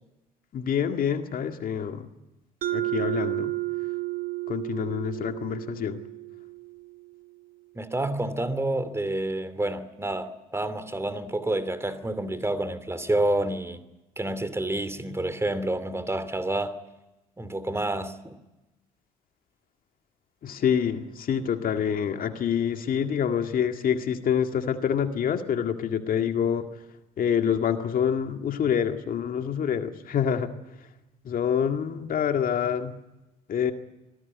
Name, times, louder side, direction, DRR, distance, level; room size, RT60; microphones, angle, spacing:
voice 1, 0.5-2.1 2.7-3.5 4.5-6.0 20.4-26.7 27.2-30.5 31.2-32.9 33.5-33.7, left 8 dB, 50° left, 2.0 m, -26 dB
Mallet percussion, 2.6-7.2, right 18 dB, 55° right, 1.5 m, -32 dB
voice 2, 7.7-13.8 14.2-16.8 17.4-18.4, right 1 dB, 15° right, 2.6 m, -29 dB
25.5 x 18.0 x 9.6 m
hypercardioid pair, 55°, 18 cm